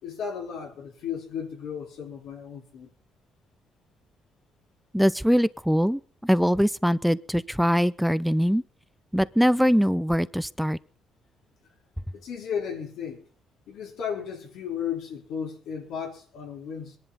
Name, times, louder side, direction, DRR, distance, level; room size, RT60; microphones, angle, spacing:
voice 1, 0.0-2.9 12.1-13.2 13.7-17.0, left 7 dB, 85° left, 3.9 m, -34 dB
voice 2, 4.9-8.6 9.1-10.8, equal, ahead, 0.6 m, -22 dB
22.0 x 11.0 x 5.4 m
cardioid pair, 90°, 0 cm